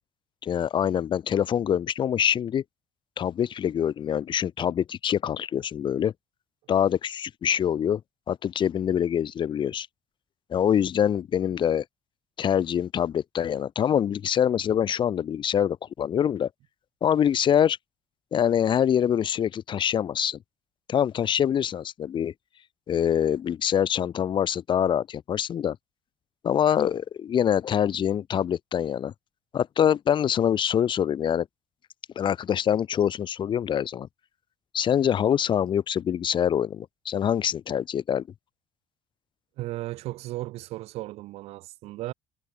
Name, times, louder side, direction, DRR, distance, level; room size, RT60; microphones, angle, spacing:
voice 1, 0.4-2.6 3.2-6.1 6.7-8.0 8.3-9.9 10.5-11.8 12.4-16.5 17.0-17.8 18.3-20.4 20.9-22.3 22.9-25.8 26.4-29.1 29.5-31.5 32.2-34.1 34.7-38.2, left 9 dB, 50° left, 1.0 m, -25 dB
voice 2, 39.6-42.1, right 17 dB, 75° right, 4.4 m, -35 dB
supercardioid pair, 80°, 11 cm